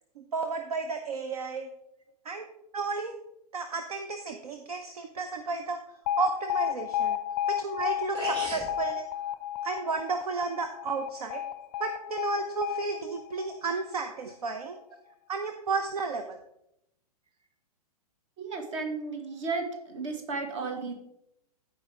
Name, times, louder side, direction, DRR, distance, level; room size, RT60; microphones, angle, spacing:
voice 1, 0.2-1.7 2.2-2.5 2.7-3.1 3.5-5.8 6.2-7.2 7.5-9.0 9.6-11.4 11.8-14.8 15.3-16.4, right 4 dB, 70° right, 6 dB, 0.8 m, -32 dB
Alarm, 6.1-14.1, left 10 dB, 35° left, 0.4 m, -32 dB
sound 1, 7.8-7.9 8.1-8.7, right 2 dB, 20° right, 3.5 m, -35 dB
voice 2, 18.4-20.9, right 4 dB, 50° right, 5 dB, 1.9 m, -34 dB
15.0 x 5.0 x 3.5 m, 0.82 s
figure-of-eight pair, 110°, 20 cm